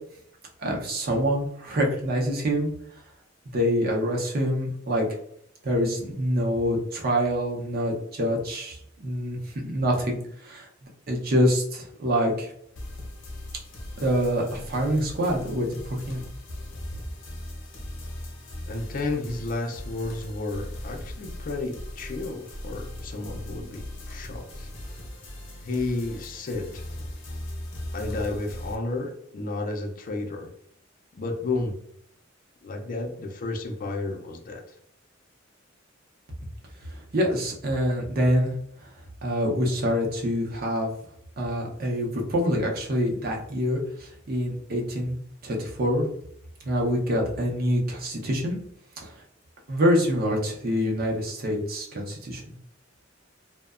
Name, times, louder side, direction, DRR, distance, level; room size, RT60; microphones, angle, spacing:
voice 1, 0.6-2.7 3.5-5.1 5.6-9.4 9.6-10.7 11.1-12.5 14.0-16.3 37.1-38.5 39.2-40.9 41.4-45.2 45.4-46.0 46.6-48.6 49.0-49.1 49.7-52.6, equal, 50° right, 0 dB, 0.6 m, -26 dB
sound 1, 12.8-28.8, left 1 dB, 65° left, 0.7 m, -39 dB
voice 2, 18.7-24.7 25.6-26.8 27.9-30.5 31.2-31.8 32.6-34.7, left 2 dB, 45° left, 4 dB, 0.4 m, -32 dB
2.7 x 2.1 x 2.3 m, 0.68 s
head